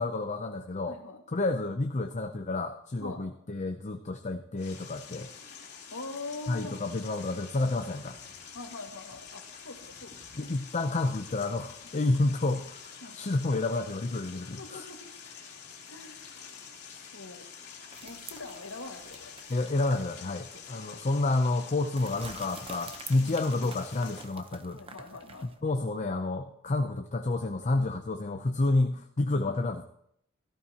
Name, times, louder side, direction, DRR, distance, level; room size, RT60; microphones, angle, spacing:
voice 1, 0.0-1.0 1.3-5.3 6.5-8.2 10.4-12.8 13.1-14.8 19.5-24.8 25.4-29.8, left 2 dB, 35° left, 6 dB, 0.6 m, -30 dB
voice 2, 0.9-1.2 3.0-3.2 5.9-6.8 8.5-10.1 11.8-12.0 13.0-13.2 14.6-15.0 15.9-16.7 16.9-19.3 19.9-21.2 23.2-23.4 24.7-25.5 29.5-29.6, left 3 dB, 75° left, 3 dB, 1.9 m, -44 dB
sound 1, 4.6-24.2, left 6 dB, 55° left, 2.7 m, -47 dB
sound 2, 17.9-20.2 20.5-20.6 22.0-25.6, right 4 dB, 25° right, 0.9 m, -47 dB
16.5 x 14.0 x 2.9 m, 0.72 s
head